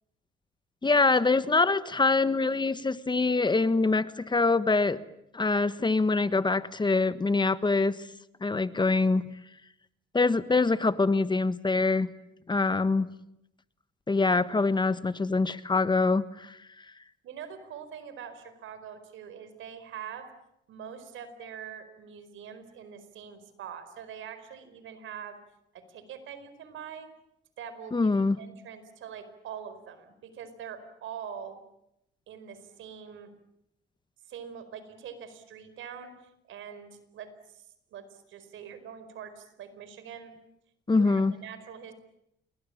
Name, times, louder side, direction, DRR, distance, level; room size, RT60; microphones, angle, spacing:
voice 1, 0.8-5.0 5.3-8.0 8.4-9.2 10.1-12.1 12.5-13.1 14.1-16.6 27.9-28.4 40.9-41.4, left 3 dB, 20° left, 14 dB, 1.3 m, -24 dB
voice 2, 17.2-20.3 20.7-25.4 25.7-27.1 27.6-31.6 32.3-33.3 34.3-36.1 36.4-37.6 37.9-40.3 40.9-41.9, right 8 dB, 80° right, 11 dB, 4.7 m, -44 dB
28.5 x 22.5 x 8.6 m, 0.81 s
cardioid pair, 90°, 20 cm